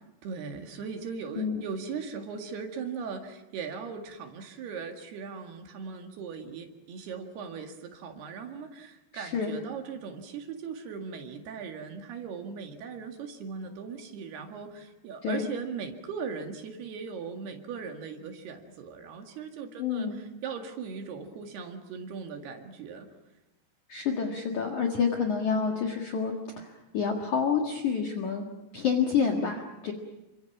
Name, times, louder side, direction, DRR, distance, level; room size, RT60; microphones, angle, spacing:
voice 1, 0.2-23.1, right 5 dB, 65° right, 4 dB, 3.8 m, -39 dB
voice 2, 9.1-9.5 15.2-15.4 19.8-20.2 23.9-28.5 28.7-29.9, left 6 dB, 55° left, 2 dB, 2.6 m, -28 dB
28.5 x 25.0 x 6.1 m, 1.0 s
omnidirectional pair, 5.3 m